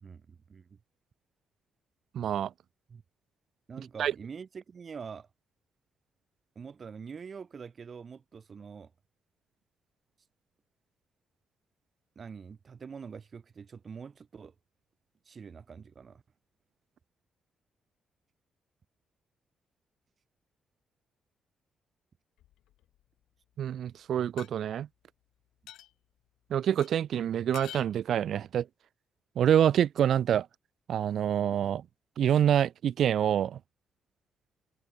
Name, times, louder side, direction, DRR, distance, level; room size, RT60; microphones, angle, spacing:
voice 1, 0.0-0.8 2.9-3.0 3.7-5.3 6.6-8.9 12.2-14.5 15.3-16.2, right 6 dB, 40° right, 2.1 m, -45 dB
voice 2, 2.1-2.5 4.0-4.1 23.6-24.9 26.5-28.7 29.4-30.5 30.9-31.9 32.2-33.6, right 9 dB, 65° right, 0.3 m, -26 dB
sound 1, 22.4-23.0 24.4-24.5 25.7-25.9 26.8-26.9 27.5-27.9, left 13 dB, 90° left, 2.1 m, -46 dB
cardioid pair, 115°, 0 cm